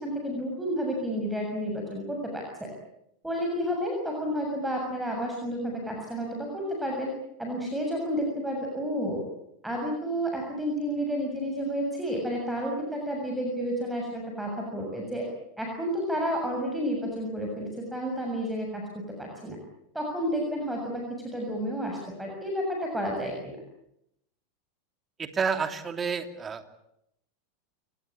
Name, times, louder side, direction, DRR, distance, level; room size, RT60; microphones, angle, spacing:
voice 1, 0.0-2.7 3.2-7.1 7.4-9.2 9.6-15.3 15.6-18.8 19.2-19.6 19.9-23.6, equal, 5° right, 0 dB, 7.1 m, -31 dB
voice 2, 25.2-26.6, right 5 dB, 25° right, 8 dB, 2.9 m, -29 dB
29.5 x 19.0 x 8.7 m, 0.81 s
figure-of-eight pair, 90°, 0 cm